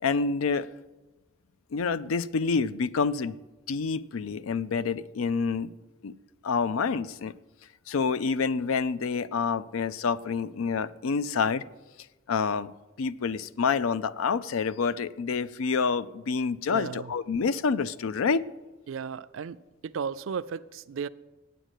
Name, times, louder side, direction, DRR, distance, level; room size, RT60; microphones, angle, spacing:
voice 1, 0.0-0.7 1.7-3.4 3.7-5.7 6.0-6.1 6.4-7.3 7.9-11.6 12.3-12.7 13.0-18.5, left 5 dB, 90° left, 0.4 m, -27 dB
voice 2, 16.7-17.1 18.9-19.6 19.8-21.1, right 6 dB, 70° right, 0.4 m, -34 dB
9.1 x 7.7 x 8.2 m
head